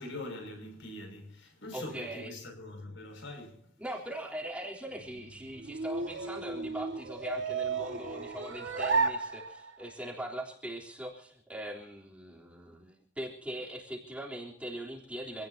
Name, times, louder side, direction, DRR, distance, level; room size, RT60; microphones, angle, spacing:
voice 1, 0.0-3.6, left 1 dB, 65° left, 6.2 m, -43 dB
voice 2, 1.7-2.4 3.8-15.5, right 1 dB, 5° right, 3.5 m, -41 dB
sound 1, 4.9-9.9, right 4 dB, 65° right, 1.9 m, -34 dB
27.0 x 18.0 x 2.8 m
head